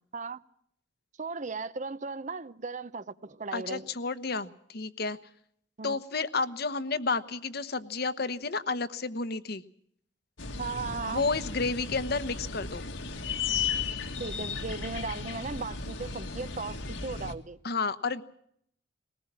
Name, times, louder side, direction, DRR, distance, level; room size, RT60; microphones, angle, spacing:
voice 1, 1.2-3.9 5.8-6.0 10.6-11.2 14.2-17.6, right 4 dB, 40° right, 0.8 m, -37 dB
voice 2, 3.5-5.2 5.8-9.6 11.0-12.9 17.6-18.2, left 4 dB, 55° left, 1.1 m, -31 dB
sound 1, 10.4-17.3, left 5 dB, 80° left, 1.8 m, -35 dB
21.0 x 19.0 x 7.5 m
head